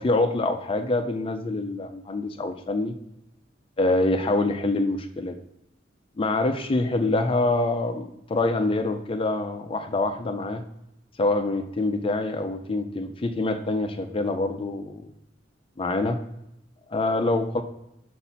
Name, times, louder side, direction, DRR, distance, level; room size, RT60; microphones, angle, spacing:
voice 1, 0.0-2.9 3.8-5.3 6.2-10.6 11.2-15.1 15.8-16.2 16.9-17.6, left 2 dB, 30° left, 7 dB, 0.4 m, -25 dB
5.0 x 4.2 x 5.6 m, 0.82 s
head